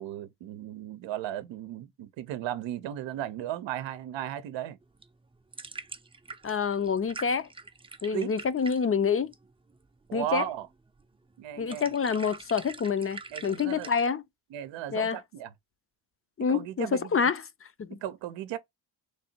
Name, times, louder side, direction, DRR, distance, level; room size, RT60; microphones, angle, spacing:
voice 1, 0.0-4.8 8.1-8.3 10.1-10.7 11.4-11.9 13.3-13.9 14.5-15.5 16.5-17.3 17.9-18.6, right 12 dB, 80° right, 0.7 m, -35 dB
sound 1, 4.8-14.1, right 3 dB, 10° right, 0.5 m, -46 dB
voice 2, 6.4-7.5 8.0-9.3 10.1-10.4 11.6-14.2 14.9-15.2 16.4-17.4 17.8-18.0, left 6 dB, 30° left, 0.6 m, -27 dB
3.3 x 2.7 x 4.3 m
supercardioid pair, 65°, 44 cm